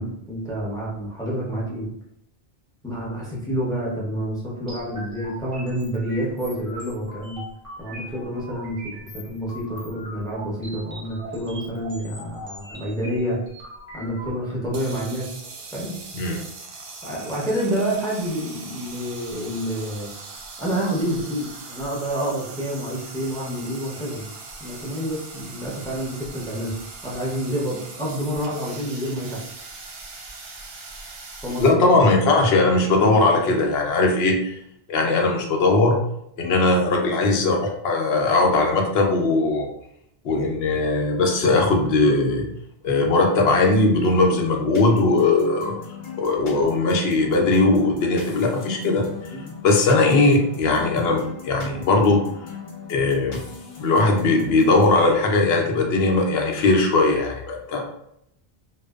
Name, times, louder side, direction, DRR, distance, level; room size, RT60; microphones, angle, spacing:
voice 1, 0.0-1.9 2.8-7.4 7.8-13.4 13.9-15.3 15.7-16.4 17.0-20.1 20.6-24.3 24.6-26.7 27.0-29.4 31.4-31.8 49.3-49.5, equal, 5° left, -6 dB, 0.6 m, -28 dB
sound 1, 4.7-14.3, right 1 dB, 35° right, 0.7 m, -40 dB
sound 2, 14.7-31.7, right 3 dB, 65° right, 0.7 m, -40 dB
voice 2, 31.6-34.6 34.9-36.0 36.4-37.6 37.8-39.7 40.2-42.5 42.8-45.8 46.2-49.1 49.6-52.2 52.9-53.4 53.8-57.9, left 2 dB, 75° left, 1 dB, 0.8 m, -19 dB
sound 3, 44.7-55.0, left 5 dB, 50° left, 0.4 m, -39 dB
2.6 x 2.1 x 2.3 m, 0.76 s
omnidirectional pair, 1.1 m